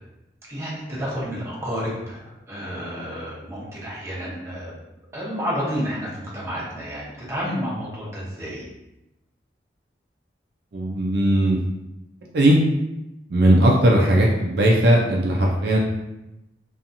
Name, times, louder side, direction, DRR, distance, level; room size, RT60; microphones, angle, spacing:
voice 1, 0.5-4.7 5.1-8.7, equal, 15° right, -7 dB, 0.7 m, -30 dB
voice 2, 10.7-11.6 12.3-12.6 13.3-15.8, right 1 dB, 60° right, -1 dB, 0.4 m, -18 dB
2.8 x 2.3 x 2.5 m, 0.94 s
head